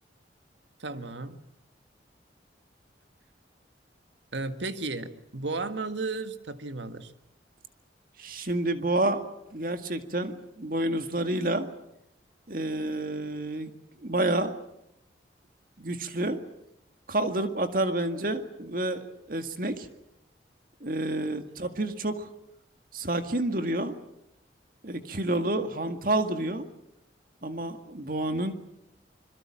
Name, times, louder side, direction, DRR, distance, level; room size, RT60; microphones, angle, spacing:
voice 1, 0.8-1.4 4.3-7.1, right 3 dB, 80° right, 9 dB, 1.7 m, -34 dB
voice 2, 8.2-9.2 9.5-11.7 12.5-13.7 14.0-14.5 15.8-16.4 17.1-19.9 20.8-22.3 22.9-23.9 24.8-26.7 27.4-28.6, right 1 dB, 50° right, 8 dB, 2.0 m, -29 dB
26.5 x 22.0 x 7.5 m, 0.81 s
head